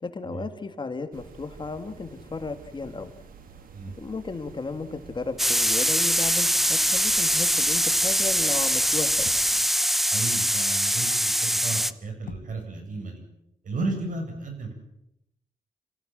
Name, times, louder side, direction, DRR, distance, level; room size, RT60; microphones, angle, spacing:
voice 1, 0.0-3.1 4.0-9.3, left 4 dB, 35° left, 7 dB, 2.1 m, -34 dB
sound 1, 1.1-9.7, right 5 dB, 85° right, 2.1 m, -49 dB
sound 2, 5.4-11.9, equal, ahead, 0.8 m, -23 dB
sound 3, 9.2-9.7 12.3-12.8, left 7 dB, 70° left, 1.3 m, -44 dB
voice 2, 10.1-13.2 13.6-14.7, right 3 dB, 65° right, 4 dB, 7.2 m, -33 dB
27.5 x 15.5 x 7.6 m, 0.81 s
wide cardioid pair, 110°, 14 cm